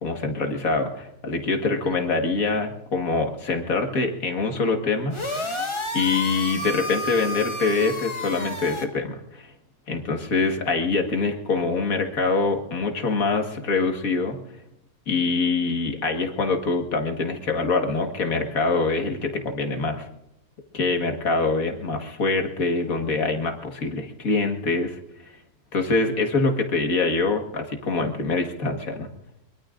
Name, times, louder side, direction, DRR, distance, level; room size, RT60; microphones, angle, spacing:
voice 1, 0.0-5.6 5.9-9.5 9.9-14.4 15.1-20.1 20.7-25.0 25.7-29.1, left 3 dB, 65° left, 4 dB, 2.1 m, -24 dB
sound 1, 5.1-8.8, left 1 dB, 20° left, 1.5 m, -31 dB
23.0 x 22.5 x 2.5 m, 0.84 s
omnidirectional pair, 1.6 m